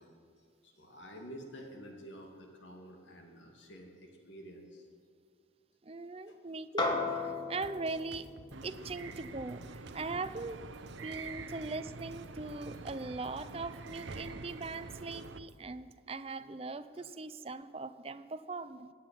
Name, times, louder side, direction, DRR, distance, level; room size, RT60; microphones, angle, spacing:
voice 1, 0.0-4.9 6.3-6.4 8.8-8.9, equal, 80° left, 2 dB, 2.4 m, -51 dB
voice 2, 5.8-8.3 8.6-10.7 11.0-18.9, right 3 dB, 30° right, 13 dB, 0.5 m, -40 dB
sound 1, 6.8-11.4, left 3 dB, 25° left, 1.4 m, -38 dB
Drum kit, 7.6-15.6, right 2 dB, 60° right, 0.9 m, -55 dB
sound 2, 8.5-15.4, right 4 dB, 90° right, 0.8 m, -46 dB
16.5 x 9.7 x 9.0 m, 2.1 s
head